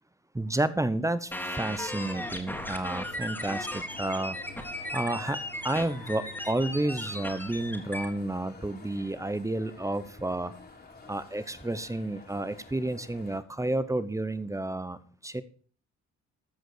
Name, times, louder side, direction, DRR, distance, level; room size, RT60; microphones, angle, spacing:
voice 1, 0.3-4.4 4.9-10.5 11.1-15.4, right 1 dB, 10° right, 14 dB, 0.9 m, -31 dB
sound 1, 1.3-8.0, left 1 dB, 5° left, 2.5 m, -36 dB
sound 2, 1.8-8.4, right 4 dB, 55° right, 4.7 m, -52 dB
sound 3, 2.0-13.4, left 3 dB, 30° left, 3.0 m, -50 dB
14.5 x 5.0 x 6.7 m, 0.43 s
cardioid pair, 90°, 30 cm